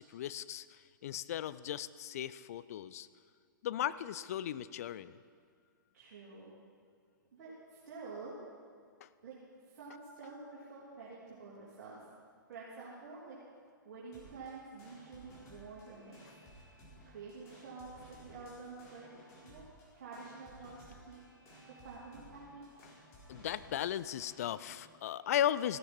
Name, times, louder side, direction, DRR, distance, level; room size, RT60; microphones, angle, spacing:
voice 1, 0.0-3.1 3.6-5.2 9.0-9.1 23.3-25.8, left 11 dB, 45° left, 16 dB, 0.4 m, -36 dB
voice 2, 5.9-6.5 7.3-8.4 9.2-9.4 9.6-12.0 12.5-13.4 13.8-16.4 17.1-19.1 19.4-19.7 19.9-21.2 21.7-22.7, right 4 dB, 50° right, -8 dB, 3.3 m, -49 dB
sound 1, 14.1-24.8, equal, 30° left, 4.0 m, -57 dB
15.5 x 13.0 x 4.4 m, 2.1 s
figure-of-eight pair, 115°, 11 cm